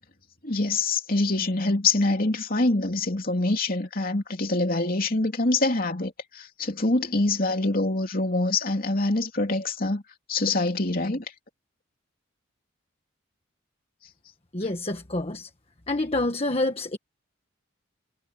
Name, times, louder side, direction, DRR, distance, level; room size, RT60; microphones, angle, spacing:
voice 1, 0.4-10.0 10.3-11.2, left 2 dB, 45° left, 3.1 m, -25 dB
voice 2, 14.5-15.5 15.9-17.0, left 2 dB, 30° left, 1.4 m, -27 dB
head